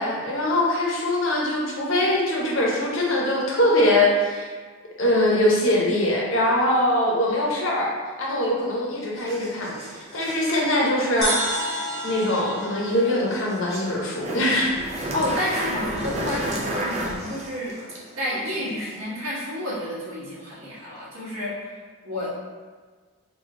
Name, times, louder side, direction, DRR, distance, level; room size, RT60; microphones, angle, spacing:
voice 1, 0.0-4.5 5.0-7.9 8.2-9.8 10.1-11.3 12.0-14.8, left 1 dB, 65° left, -2 dB, 0.7 m, -22 dB
sound 1, 9.2-19.0, right 1 dB, 30° right, 0.4 m, -34 dB
sound 2, 11.2-14.7, equal, 5° left, 0.8 m, -31 dB
voice 2, 15.1-17.7 18.2-22.3, left 1 dB, 75° right, -7 dB, 1.2 m, -30 dB
3.2 x 2.7 x 3.6 m, 1.5 s
head